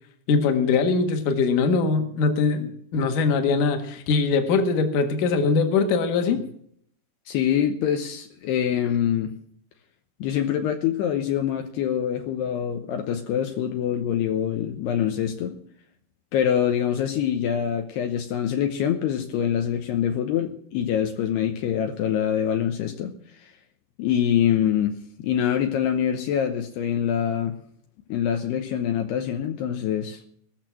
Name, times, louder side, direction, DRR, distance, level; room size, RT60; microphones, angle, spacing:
voice 1, 0.3-6.4, left 4 dB, 55° left, 7 dB, 2.6 m, -22 dB
voice 2, 7.3-9.3 10.2-15.6 16.3-23.1 23.4-23.5 24.0-27.5 28.1-30.2, left 9 dB, 75° left, 5 dB, 2.9 m, -25 dB
19.5 x 6.7 x 7.6 m, 0.65 s
omnidirectional pair, 5.1 m